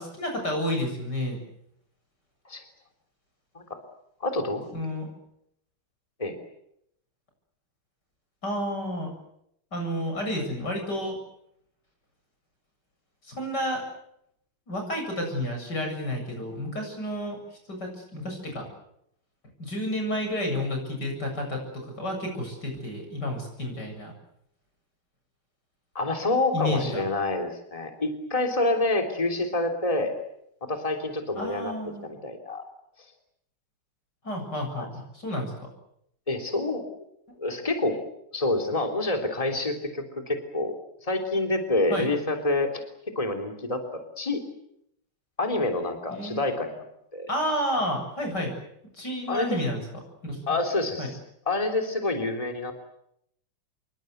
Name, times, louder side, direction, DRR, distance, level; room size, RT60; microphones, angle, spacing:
voice 1, 0.0-1.4 4.7-5.1 8.4-9.1 9.7-11.2 13.2-13.8 14.7-17.4 17.7-18.7 19.6-24.1 26.5-27.0 31.4-32.1 34.2-35.7 41.9-42.1 46.1-46.4 47.3-48.5 48.9-49.8 50.2-50.4 51.0-51.1, left 1 dB, 50° left, 3 dB, 8.4 m, -30 dB
voice 2, 4.2-4.7 6.2-6.4 26.0-30.1 30.6-31.7 32.0-32.6 34.8-34.9 36.3-36.8 37.4-38.0 38.3-40.8 41.0-42.8 43.2-44.4 45.4-46.7 47.1-47.3 49.3-49.6 50.5-51.2 51.5-52.7, left 2 dB, 15° left, 4 dB, 3.4 m, -27 dB
27.5 x 23.5 x 8.0 m, 0.75 s
omnidirectional pair, 2.4 m